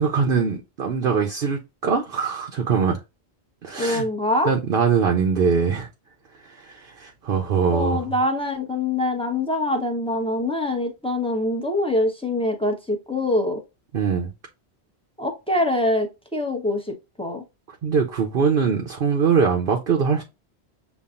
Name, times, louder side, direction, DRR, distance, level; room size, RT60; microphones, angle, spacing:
voice 1, 0.0-3.0 3.6-4.1 4.4-5.9 6.4-8.0 13.9-14.3 17.8-20.2, right 6 dB, 60° right, 0.9 m, -22 dB
voice 2, 3.8-4.5 7.7-13.6 15.2-17.4, left 1 dB, 5° left, 0.8 m, -24 dB
7.2 x 2.4 x 2.4 m
omnidirectional pair, 1.1 m